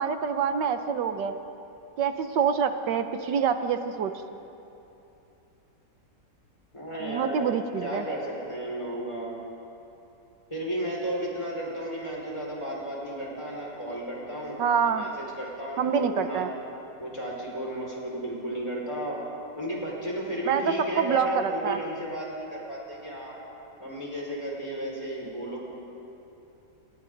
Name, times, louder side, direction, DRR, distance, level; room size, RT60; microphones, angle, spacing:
voice 1, 0.0-1.3 2.0-4.1 7.0-8.0 14.6-15.1 15.8-16.5 20.5-21.8, right 7 dB, 85° right, 8 dB, 1.6 m, -26 dB
voice 2, 6.7-7.5 7.8-9.3 10.5-16.5 17.0-19.2 19.6-23.4 23.8-25.7, right 1 dB, 15° left, -4 dB, 5.3 m, -34 dB
30.0 x 28.0 x 4.0 m, 2.9 s
omnidirectional pair, 1.8 m